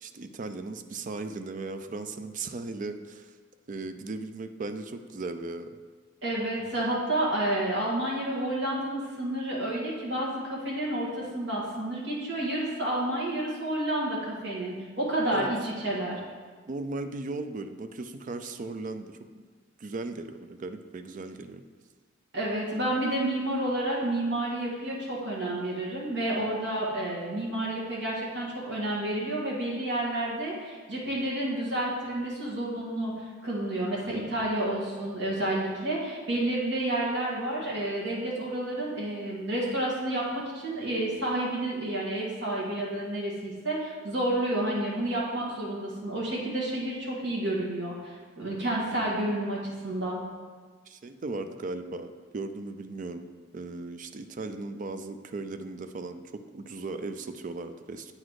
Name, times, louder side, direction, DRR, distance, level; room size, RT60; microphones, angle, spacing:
voice 1, 0.0-3.4 3.7-5.7 15.3-15.5 16.7-19.4 19.8-21.6 50.9-53.3 53.5-58.1, right 3 dB, 40° right, 9 dB, 0.4 m, -37 dB
voice 2, 6.2-16.2 22.3-33.1 33.4-50.2, right 1 dB, 65° right, -5 dB, 1.6 m, -30 dB
8.6 x 4.1 x 4.8 m, 1.5 s
head